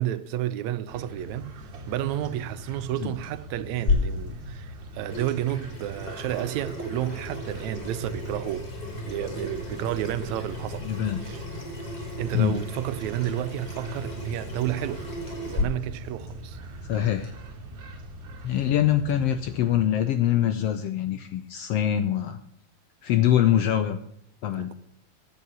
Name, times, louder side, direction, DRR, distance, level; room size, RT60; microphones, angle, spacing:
voice 1, 0.0-1.5 1.9-8.7 9.0-10.9 11.2-11.4 12.2-16.6 18.5-18.7 24.5-24.7, right 13 dB, 80° right, 1.9 m, -31 dB
sound 1, 0.9-19.7, right 1 dB, 55° right, 2.7 m, -42 dB
sound 2, 1.3-17.3, left 1 dB, 50° left, 4.9 m, -49 dB
Water tap faucet / Sink (filling or washing), 3.9-15.6, left 3 dB, 30° left, 3.3 m, -33 dB
voice 2, 10.8-11.2 12.3-12.6 16.8-17.3 18.4-22.4 23.0-24.0 24.4-24.7, left 11 dB, 80° left, 1.4 m, -24 dB
11.0 x 8.4 x 8.0 m
omnidirectional pair, 3.4 m